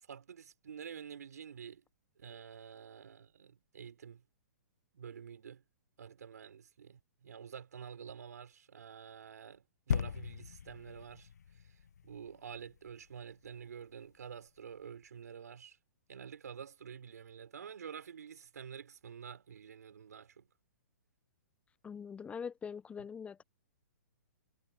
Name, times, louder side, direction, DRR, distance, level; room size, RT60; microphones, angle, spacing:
voice 1, 0.0-1.8 2.2-4.2 4.9-5.6 6.0-15.8 16.1-20.5, right 7 dB, 70° right, 4.4 m, -49 dB
sound 1, 9.9-13.5 14.1-14.2, left 7 dB, 75° left, 0.9 m, -39 dB
voice 2, 21.8-23.4, left 6 dB, 15° left, 0.9 m, -43 dB
hypercardioid pair, 120°, 9 cm